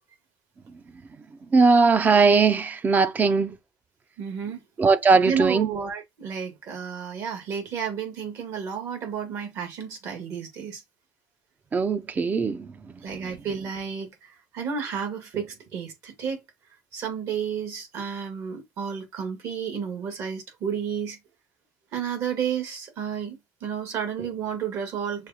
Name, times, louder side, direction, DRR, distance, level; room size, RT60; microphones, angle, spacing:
voice 1, 1.5-3.6 4.8-5.7 11.7-12.7, right 4 dB, 30° right, 0.5 m, -19 dB
voice 2, 4.2-4.6 5.2-10.8 13.0-16.4 16.9-21.2 21.9-25.3, right 7 dB, 65° right, 1.9 m, -31 dB
6.4 x 2.3 x 2.9 m
cardioid pair, 100°, 6 cm